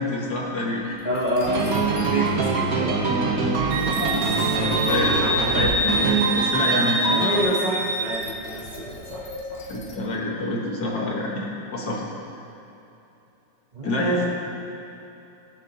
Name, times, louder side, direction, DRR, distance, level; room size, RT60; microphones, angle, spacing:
voice 1, 0.0-1.0 4.6-7.4 9.7-12.0 13.8-14.3, left 1 dB, 60° left, -2 dB, 1.9 m, -27 dB
sound 1, 0.9-2.2 2.6-2.7 3.7-5.9 6.2-6.6 7.7-7.8 8.1-10.0, left 2 dB, 35° left, 1.0 m, -37 dB
voice 2, 1.0-3.0 7.1-9.7 13.7-14.3, equal, 35° right, -4 dB, 0.7 m, -28 dB
sound 2, 1.5-7.4, right 4 dB, 55° right, 1.4 m, -24 dB
Wind instrument woodwind instrument, 3.7-8.3, right 1 dB, 85° right, 1.5 m, -25 dB
20.0 x 7.0 x 2.9 m, 2.9 s
omnidirectional pair, 2.0 m